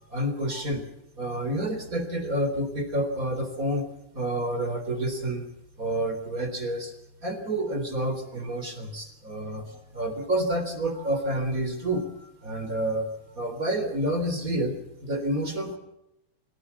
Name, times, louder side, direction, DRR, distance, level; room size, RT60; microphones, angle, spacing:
voice 1, 0.1-0.9 1.2-3.9 4.1-5.5 5.8-6.9 7.2-14.8 15.0-15.8, right 1 dB, 25° right, 7 dB, 3.8 m, -29 dB
27.0 x 17.0 x 7.1 m, 0.85 s
omnidirectional pair, 3.4 m